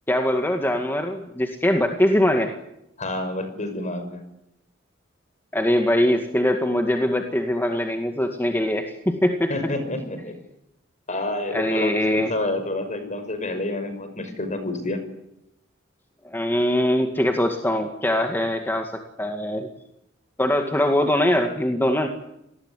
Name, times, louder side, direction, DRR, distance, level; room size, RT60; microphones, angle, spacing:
voice 1, 0.1-2.5 5.5-9.5 11.5-12.3 16.2-19.7 20.4-22.1, left 1 dB, 10° left, 4 dB, 2.1 m, -22 dB
voice 2, 3.0-4.2 9.5-10.3 11.1-15.0, left 2 dB, 40° left, 9 dB, 6.1 m, -28 dB
28.0 x 19.5 x 10.0 m, 0.84 s
head